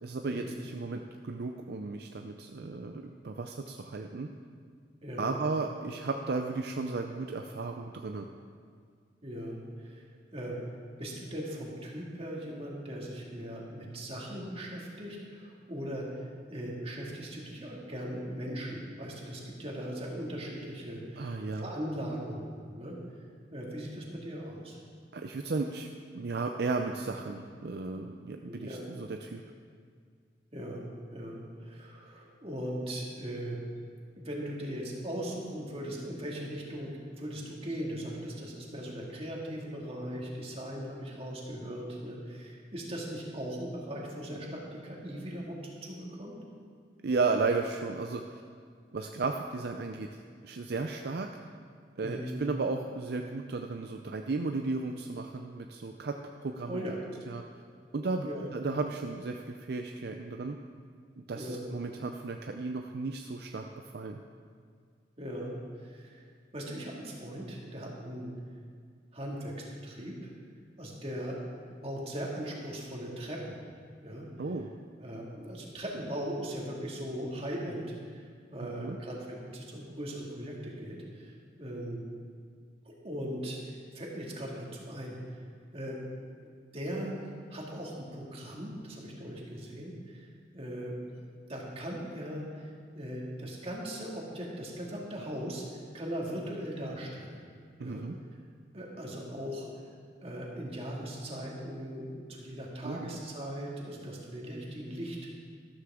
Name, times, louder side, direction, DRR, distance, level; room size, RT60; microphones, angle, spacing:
voice 1, 0.0-4.3 5.2-8.3 21.2-21.7 25.1-25.9 26.1-29.4 47.0-48.4 48.9-50.1 50.4-51.3 52.0-56.8 57.3-57.4 57.9-60.6 61.2-63.6 63.9-64.2 74.4-74.7 78.6-79.0 97.8-98.2 102.8-103.2, right 3 dB, 60° right, 4 dB, 0.5 m, -34 dB
voice 2, 5.0-5.3 9.2-10.0 10.3-10.6 11.0-23.0 23.5-24.8 28.4-28.8 30.5-33.6 34.2-46.4 52.0-52.4 56.7-57.0 58.2-58.5 61.3-61.6 65.2-66.2 66.5-68.3 69.1-70.3 70.8-71.4 71.8-73.6 74.0-74.3 75.0-82.0 82.8-85.2 85.7-86.0 86.4-87.1 87.5-91.0 91.5-95.6 95.9-97.4 97.8-98.0 98.7-99.7 100.2-105.4, equal, 35° right, -2 dB, 2.1 m, -39 dB
13.0 x 12.5 x 3.7 m, 2.1 s
head